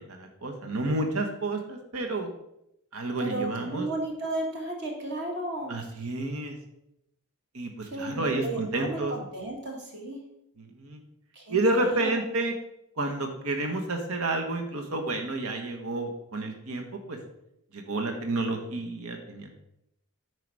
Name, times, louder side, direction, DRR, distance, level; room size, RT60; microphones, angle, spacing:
voice 1, 0.0-2.3 2.9-3.9 5.7-6.5 7.5-9.1 10.6-11.0 11.5-12.5 13.0-17.2 17.7-19.6, right 2 dB, 80° right, 4 dB, 1.2 m, -30 dB
voice 2, 3.2-5.7 7.8-10.2 11.3-12.1, right 2 dB, 50° right, 1 dB, 1.8 m, -34 dB
9.2 x 4.9 x 4.8 m, 0.81 s
head